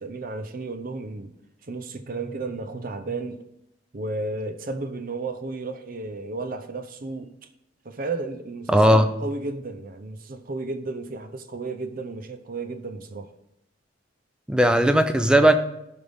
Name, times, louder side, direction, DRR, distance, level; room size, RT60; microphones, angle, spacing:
voice 1, 0.0-1.3 1.6-3.4 3.9-7.3 7.8-13.3, right 3 dB, 45° right, 9 dB, 0.6 m, -33 dB
voice 2, 8.7-9.1 14.5-15.5, right 1 dB, 5° right, 8 dB, 0.5 m, -17 dB
15.0 x 5.3 x 3.5 m, 0.84 s
head